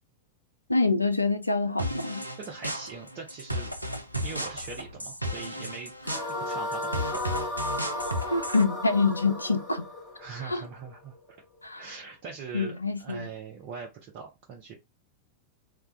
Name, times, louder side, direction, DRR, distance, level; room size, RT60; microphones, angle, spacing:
voice 1, 0.7-2.2 8.3-9.9 10.4-10.6 11.6-11.8 12.5-13.3, left 3 dB, 85° left, 0.3 m, -26 dB
sound 1, 1.8-8.6, equal, 90° right, 0.4 m, -34 dB
voice 2, 2.4-3.7 4.2-5.9 6.4-7.2 10.2-11.1 11.8-14.7, right 5 dB, 40° right, 0.6 m, -41 dB
sound 2, 6.0-11.2, left 1 dB, 30° left, 1.1 m, -34 dB
2.3 x 2.1 x 3.7 m
figure-of-eight pair, 90°, 0 cm